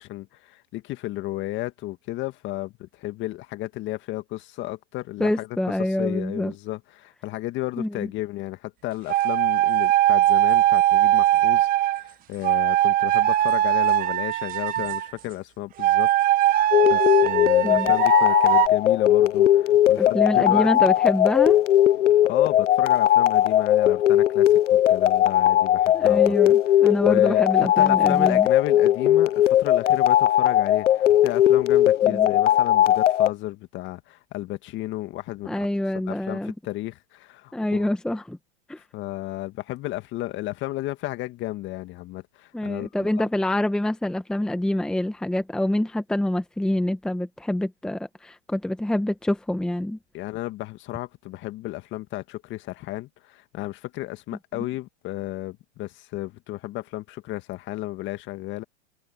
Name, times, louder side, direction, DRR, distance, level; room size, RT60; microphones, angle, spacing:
voice 1, 0.0-5.5 5.8-16.1 16.4-20.7 22.2-26.3 27.0-35.7 36.1-37.9 38.9-43.1 50.1-58.6, left 17 dB, 30° left, 2.1 m, -33 dB
voice 2, 5.2-6.5 7.8-8.1 17.6-17.9 20.0-21.6 25.9-28.5 32.0-32.3 35.5-36.5 37.5-38.4 38.7-38.8 42.5-50.0, left 1 dB, ahead, 1.2 m, -26 dB
sound 1, 9.1-12.0 12.4-15.1 15.8-18.7, right 14 dB, 25° right, 1.1 m, -20 dB
sound 2, 16.7-33.3, left 12 dB, 85° left, 0.7 m, -19 dB
hypercardioid pair, 125°, 36 cm